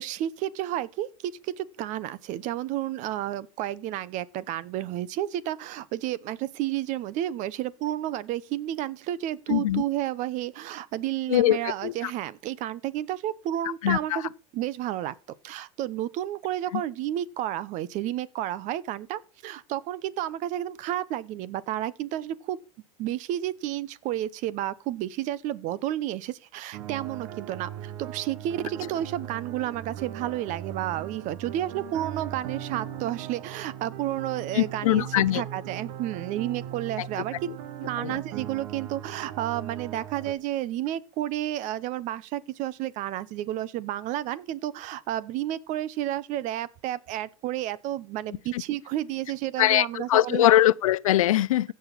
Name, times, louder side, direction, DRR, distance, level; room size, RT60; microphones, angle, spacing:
voice 1, 0.0-15.2 15.4-22.6 23.0-37.4 37.8-50.5, right 13 dB, 50° right, 0.9 m, -31 dB
voice 2, 9.5-9.8 11.3-12.1 13.8-14.2 16.7-16.8 34.5-35.4 37.0-37.1 38.0-38.2 48.5-48.6 49.6-51.7, left 14 dB, 90° left, 0.6 m, -22 dB
sound 1, 26.7-40.3, right 10 dB, 65° right, 1.2 m, -39 dB
16.0 x 6.4 x 4.0 m
supercardioid pair, 120°, 17 cm